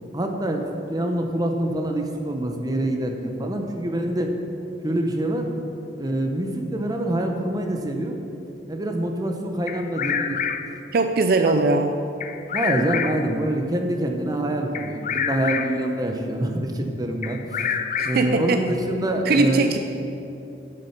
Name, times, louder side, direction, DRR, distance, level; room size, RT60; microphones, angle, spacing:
voice 1, 0.1-4.3 4.8-5.5 6.0-8.2 8.7-10.4 11.4-11.5 12.5-17.7 18.0-19.8, right 1 dB, 20° right, 3 dB, 0.8 m, -25 dB
Bird vocalization bird call bird song, 9.7-10.8 12.2-13.4 14.7-15.9 17.2-18.4, left 7 dB, 45° left, 0.4 m, -27 dB
voice 2, 10.9-11.9 18.0-18.6 19.3-19.8, right 3 dB, 60° right, 7 dB, 0.4 m, -20 dB
10.0 x 6.4 x 5.8 m, 2.8 s
head